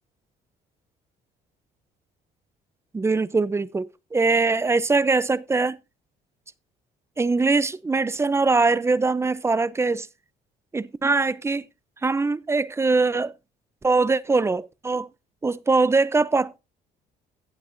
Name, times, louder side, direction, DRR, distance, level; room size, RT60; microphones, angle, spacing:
voice 1, 2.9-5.8 7.2-10.1 10.7-11.6 12.0-13.3 13.8-15.1 15.4-16.6, right 3 dB, 15° right, 0.6 m, -22 dB
16.5 x 8.0 x 2.6 m
cardioid pair, 110°, 17 cm